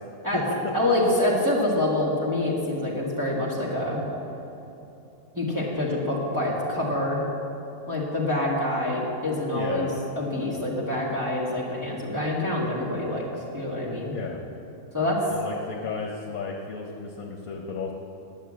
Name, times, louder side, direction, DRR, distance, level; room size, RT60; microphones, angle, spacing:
voice 1, 0.7-4.0 5.3-7.2 7.9-14.1 14.9-15.2, left 1 dB, 10° right, -7 dB, 1.8 m, -26 dB
voice 2, 9.5-9.9 14.1-14.4 15.3-17.9, left 5 dB, 70° left, 0 dB, 1.3 m, -33 dB
10.5 x 7.3 x 7.5 m, 2.9 s
omnidirectional pair, 1.6 m